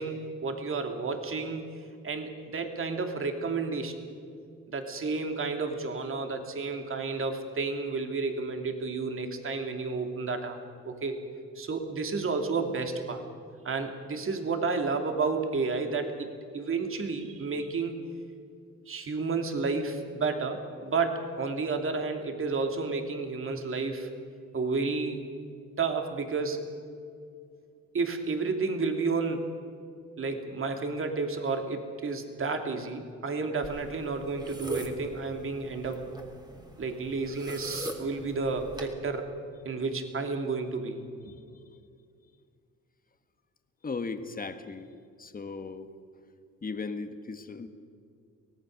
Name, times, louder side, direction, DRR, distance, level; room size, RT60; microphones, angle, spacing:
voice 1, 0.0-1.6 2.0-4.0 4.7-10.6 10.8-11.2 11.5-13.2 13.6-17.9 18.9-24.1 24.5-25.2 25.8-26.6 27.9-29.5 30.2-36.0 36.8-39.3 39.6-41.4, right 4 dB, 45° right, 5 dB, 2.9 m, -31 dB
sound 1, 33.6-38.9, right 1 dB, 15° right, 3.3 m, -42 dB
voice 2, 43.8-44.9 45.2-45.9 46.6-47.7, left 4 dB, 30° left, 8 dB, 1.7 m, -36 dB
24.5 x 18.0 x 6.7 m, 2.3 s
cardioid pair, 90°, 30 cm